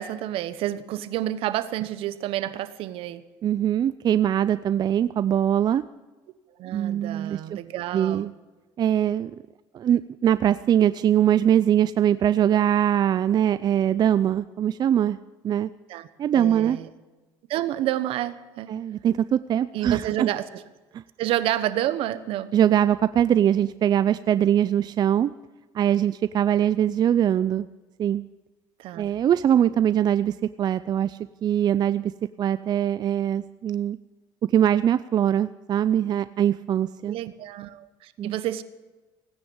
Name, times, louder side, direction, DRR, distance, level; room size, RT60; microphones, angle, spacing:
voice 1, 0.0-3.2 6.6-8.3 15.9-16.1 16.3-16.9 17.5-18.8 19.7-20.6 21.2-22.5 28.8-29.1 37.0-38.6, right 13 dB, 70° right, 14 dB, 1.0 m, -29 dB
voice 2, 3.4-5.8 6.7-7.6 7.9-8.3 8.8-9.3 9.7-15.2 15.4-15.7 16.2-16.8 18.7-20.3 20.9-21.0 22.5-25.3 25.7-27.7 28.0-28.2 29.0-32.1 32.4-34.0 34.5-37.2 38.2-38.4, right 10 dB, 45° right, 14 dB, 0.5 m, -22 dB
17.0 x 9.8 x 7.2 m, 1.2 s
cardioid pair, 95°, 10 cm